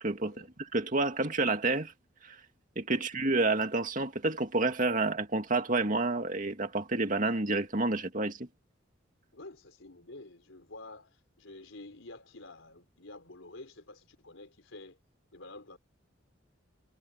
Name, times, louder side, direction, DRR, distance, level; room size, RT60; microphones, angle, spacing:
voice 1, 0.0-1.9 2.2-2.4 2.8-8.5, right 2 dB, 40° right, 2.3 m, -29 dB
voice 2, 9.3-15.0 15.3-15.8, left 2 dB, 85° left, 4.1 m, -49 dB
head